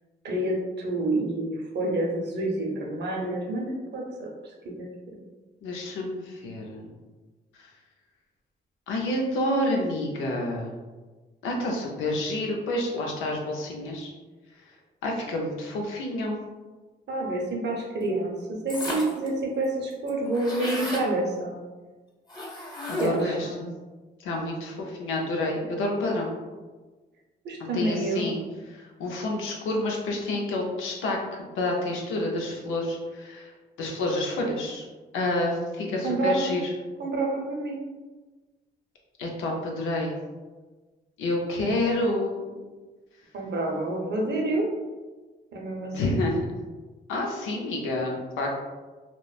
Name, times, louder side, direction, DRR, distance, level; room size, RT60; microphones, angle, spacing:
voice 1, 0.2-5.2 17.1-21.6 23.0-23.6 27.4-28.3 36.0-36.5 37.0-37.8 43.3-44.7 45.5-46.2, right 2 dB, 60° right, -1 dB, 0.7 m, -28 dB
voice 2, 5.6-6.9 7.6-7.7 8.9-10.7 11.4-14.1 15.0-16.4 22.9-23.7 24.2-26.3 27.7-28.4 28.7-31.2 31.5-33.5 33.8-34.9 35.1-36.7 39.2-40.2 41.2-42.5 45.9-46.4 47.1-48.5, left 1 dB, 85° left, 0 dB, 0.5 m, -28 dB
sound 1, 18.7-19.3 19.6-19.7 19.9-21.1 22.3-23.3, left 1 dB, 20° left, 0.9 m, -33 dB
2.9 x 2.1 x 2.3 m, 1.3 s
supercardioid pair, 65°, 20 cm